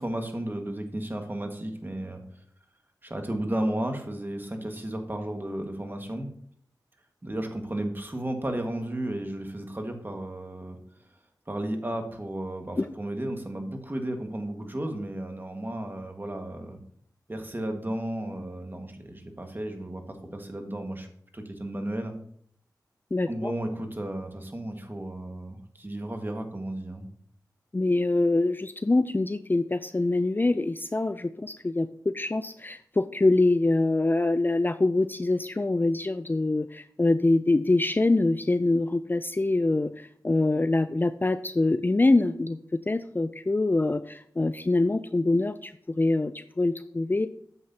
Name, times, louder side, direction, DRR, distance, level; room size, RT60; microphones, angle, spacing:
voice 1, 0.0-2.2 3.0-6.3 7.2-10.8 11.5-16.8 17.3-21.1 21.3-22.1 23.3-27.1, right 1 dB, 30° right, 4 dB, 1.7 m, -33 dB
voice 2, 23.1-23.5 27.7-47.3, left 2 dB, 25° left, 12 dB, 0.4 m, -25 dB
9.6 x 7.7 x 2.8 m, 0.63 s
cardioid pair, 40°, 7 cm